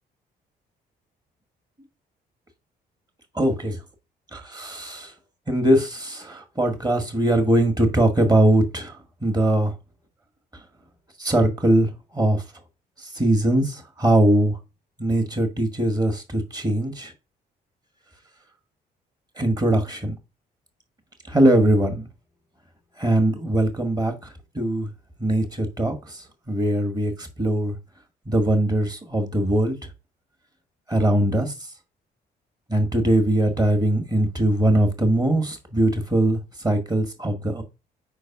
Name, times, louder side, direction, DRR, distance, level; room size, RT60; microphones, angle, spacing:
voice 1, 3.3-3.8 4.3-5.1 5.5-8.9 9.2-9.7 11.2-12.4 13.0-14.6 15.0-17.1 19.4-20.1 21.3-22.1 23.0-24.9 25.2-27.8 28.3-29.8 30.9-31.5 32.7-37.6, right 1 dB, 20° right, 1.9 m, -21 dB
4.7 x 4.5 x 5.9 m
cardioid pair, 90°, 18 cm